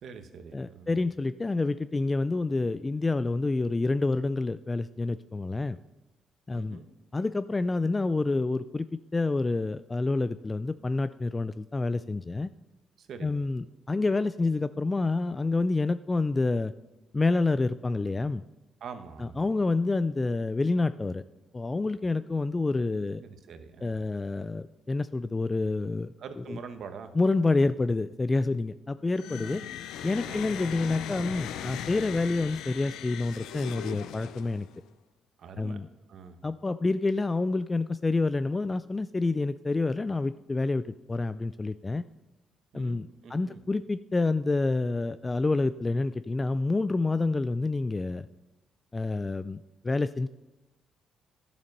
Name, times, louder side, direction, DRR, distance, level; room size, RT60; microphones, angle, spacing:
voice 1, 0.0-0.9 6.5-6.9 13.0-13.3 18.8-19.5 23.2-24.1 26.2-27.1 29.4-29.6 30.2-30.5 35.4-35.8 36.1-36.4 42.7-43.6, right 6 dB, 65° right, 8 dB, 1.1 m, -44 dB
voice 2, 0.5-5.8 6.5-6.8 7.1-12.5 13.2-16.7 17.1-18.4 19.2-21.2 21.5-23.2 23.8-26.1 26.5-26.6 27.1-29.6 30.0-34.7 35.6-35.9 36.4-42.0 42.7-48.3 48.9-50.3, left 3 dB, 25° left, 14 dB, 0.3 m, -28 dB
sound 1, 29.1-34.8, left 10 dB, 85° left, 0.5 m, -39 dB
11.0 x 7.1 x 5.3 m, 1.0 s
cardioid pair, 90°, 0 cm